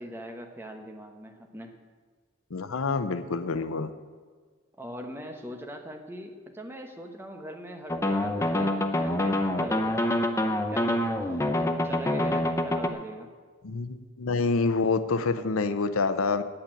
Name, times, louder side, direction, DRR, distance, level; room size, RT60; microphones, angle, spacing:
voice 1, 0.0-1.7 4.8-10.2 10.7-11.4 11.7-13.3, equal, 10° right, 4 dB, 1.0 m, -41 dB
voice 2, 2.5-3.9 13.6-16.4, left 4 dB, 85° left, 12 dB, 0.7 m, -27 dB
sound 1, 7.9-12.9, left 1 dB, 15° left, 0.6 m, -26 dB
8.7 x 8.3 x 8.9 m, 1.5 s
head